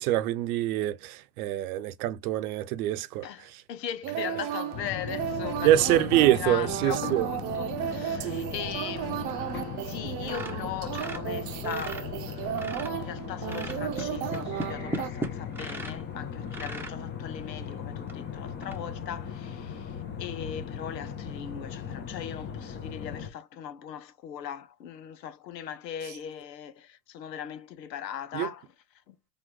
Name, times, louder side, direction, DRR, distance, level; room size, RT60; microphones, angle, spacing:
voice 1, 0.0-3.3 5.6-7.3 28.3-28.5, right 13 dB, 65° right, 0.8 m, -25 dB
voice 2, 3.2-28.7 29.1-29.2, left 9 dB, 85° left, 0.9 m, -39 dB
sound 1, 4.0-15.1, right 10 dB, 40° right, 0.7 m, -34 dB
sound 2, 4.7-23.3, left 7 dB, 20° left, 0.8 m, -38 dB
sound 3, 10.2-12.1 12.4-13.0 13.5-16.0 16.5-17.0 17.6-17.7 18.1-18.2 18.6-18.8, right 1 dB, 5° right, 0.9 m, -37 dB
4.2 x 2.6 x 3.1 m
hypercardioid pair, 95°, 49 cm